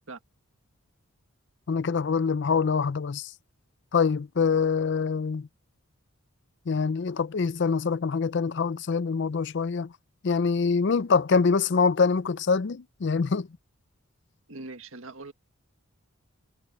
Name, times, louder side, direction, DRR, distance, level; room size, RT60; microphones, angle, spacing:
voice 1, 1.7-3.3 3.9-5.5 6.7-9.9 10.2-13.5, left 5 dB, 55° left, 0.4 m, -25 dB
voice 2, 14.5-15.3, right 3 dB, 65° right, 1.8 m, -41 dB
head